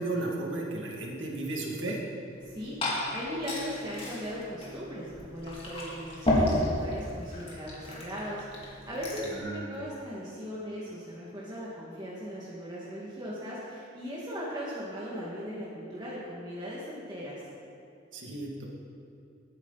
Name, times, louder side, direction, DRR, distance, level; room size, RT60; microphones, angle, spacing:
voice 1, 0.0-2.0 9.4-9.8 18.1-18.7, right 2 dB, 75° right, -1 dB, 2.3 m, -34 dB
Glass / Fill (with liquid), 2.3-9.4, left 1 dB, 30° left, 2.9 m, -33 dB
voice 2, 2.4-17.4, equal, 25° right, -7 dB, 2.0 m, -38 dB
19.0 x 9.8 x 4.1 m, 2.5 s
head